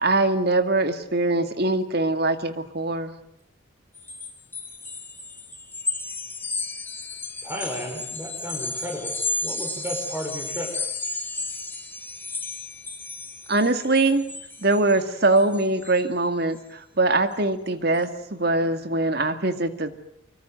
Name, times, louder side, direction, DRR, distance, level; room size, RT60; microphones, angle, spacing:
voice 1, 0.0-3.1 13.5-14.2 14.6-19.9, right 2 dB, 55° right, 9 dB, 2.1 m, -22 dB
sound 1, 4.0-16.0, left 3 dB, 10° left, 2.1 m, -33 dB
voice 2, 7.4-10.7, equal, 10° right, 1 dB, 4.9 m, -33 dB
25.0 x 23.5 x 7.8 m, 0.77 s
head